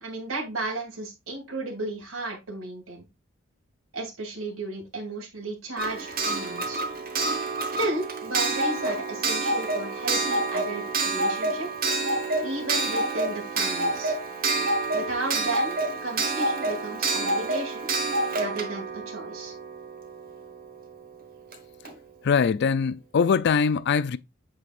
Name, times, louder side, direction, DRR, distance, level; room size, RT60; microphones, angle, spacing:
voice 1, 0.0-3.0 3.9-6.8 7.8-11.7 12.4-14.1 14.9-17.9 18.4-19.5, right 2 dB, 85° right, 2.3 m, -34 dB
Clock, 5.8-20.4 21.5-21.6 21.8-21.9, right 2 dB, 45° right, 1.4 m, -28 dB
voice 2, 22.2-24.2, left 6 dB, 55° left, 0.4 m, -22 dB
7.6 x 4.9 x 2.5 m
head